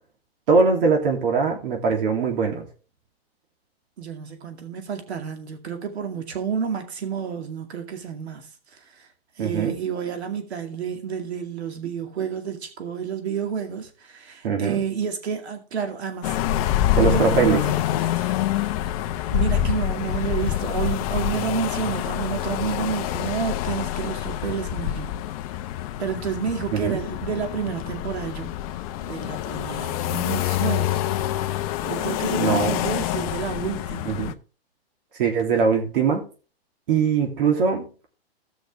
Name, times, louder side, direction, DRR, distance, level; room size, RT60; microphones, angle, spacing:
voice 1, 0.5-2.7 9.4-9.8 14.4-14.8 17.0-17.6 26.7-27.0 32.4-32.8 34.0-34.3 35.2-36.3 36.9-37.9, right 5 dB, 55° right, 2.9 m, -21 dB
voice 2, 4.0-9.1 9.4-16.3 16.9-18.3 18.8-18.9 19.3-25.2 26.0-28.6 29.0-31.2 31.8-34.3, right 7 dB, 90° right, 2.3 m, -30 dB
sound 1, 16.2-34.3, left 12 dB, 35° left, 0.7 m, -26 dB
16.5 x 6.3 x 3.5 m
hypercardioid pair, 150°, 32 cm